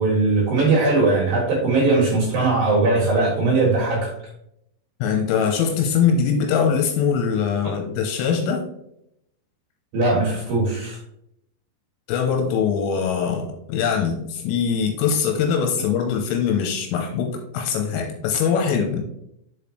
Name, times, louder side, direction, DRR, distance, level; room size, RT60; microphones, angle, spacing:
voice 1, 0.0-4.1 9.9-11.0, right 3 dB, 60° right, -4 dB, 2.7 m, -19 dB
voice 2, 5.0-8.6 12.1-19.0, left 6 dB, 85° left, 3 dB, 3.3 m, -22 dB
6.8 x 5.2 x 3.2 m, 0.78 s
omnidirectional pair, 6.0 m